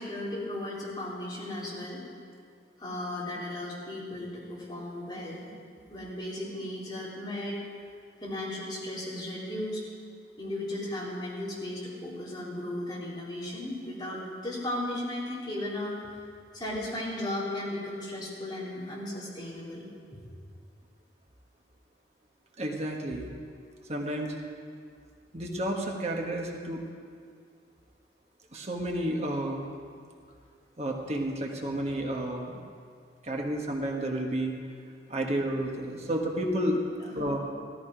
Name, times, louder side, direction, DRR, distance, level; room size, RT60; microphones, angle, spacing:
voice 1, 0.0-2.0 2.8-5.5 5.9-7.6 8.2-9.9 10.4-16.2 16.5-19.8 20.1-20.2 35.9-36.0 37.0-37.3, left 1 dB, 25° left, -7 dB, 3.6 m, -36 dB
voice 2, 22.6-23.3 23.9-24.4 25.3-26.8 28.5-29.6 30.8-32.5 33.2-34.6 35.1-36.8 37.1-37.4, right 1 dB, 35° right, 1 dB, 1.4 m, -31 dB
15.5 x 14.0 x 5.0 m, 2.2 s
head